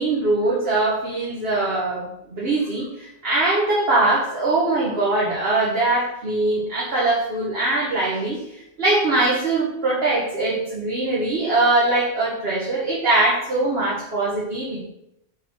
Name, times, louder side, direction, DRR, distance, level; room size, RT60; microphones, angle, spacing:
voice 1, 0.0-8.4 8.8-14.8, right 2 dB, 55° right, -6 dB, 1.7 m, -22 dB
5.9 x 4.8 x 6.5 m, 0.80 s
omnidirectional pair, 1.2 m